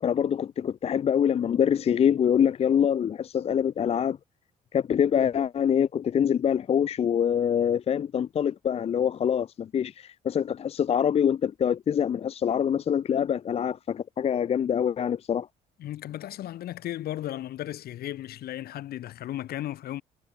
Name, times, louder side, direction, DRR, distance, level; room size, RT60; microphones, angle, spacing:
voice 1, 0.0-4.2 4.7-15.5, left 8 dB, 35° left, 0.5 m, -25 dB
voice 2, 15.8-20.0, left 13 dB, 65° left, 2.3 m, -35 dB
cardioid pair, 110°, 17 cm